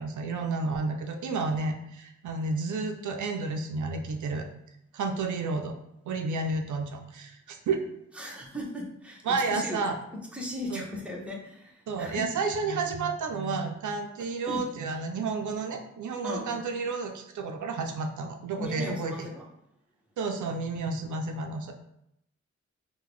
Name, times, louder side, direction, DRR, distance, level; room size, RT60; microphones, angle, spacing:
voice 1, 0.0-4.5 4.9-5.7 6.1-7.8 9.3-10.0 10.7-10.8 11.9-19.3 20.2-21.7, right 4 dB, 85° right, 4 dB, 0.5 m, -31 dB
voice 2, 8.1-9.8 10.1-12.3 14.4-14.6 16.2-16.7 18.6-19.4, left 1 dB, 5° right, -2 dB, 0.8 m, -37 dB
3.7 x 2.2 x 3.0 m, 0.77 s
cardioid pair, 75°, 29 cm